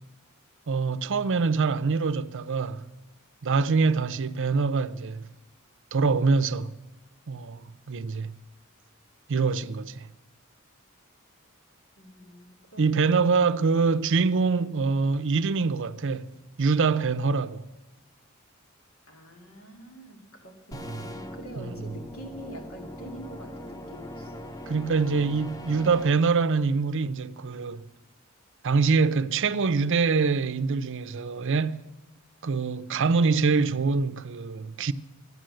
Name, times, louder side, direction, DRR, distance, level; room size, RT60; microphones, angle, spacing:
voice 1, 0.7-2.8 3.4-5.2 5.9-6.7 7.3-8.3 9.3-10.1 12.8-16.3 16.6-17.6 20.7-21.1 21.6-21.9 24.7-27.8 28.6-31.8 32.4-34.9, right 4 dB, 60° right, 0.6 m, -25 dB
voice 2, 12.0-13.2 19.1-24.5, right 1 dB, 75° left, 2.7 m, -45 dB
sound 1, 20.7-26.1, left 1 dB, 15° left, 0.7 m, -41 dB
14.0 x 11.0 x 7.7 m
head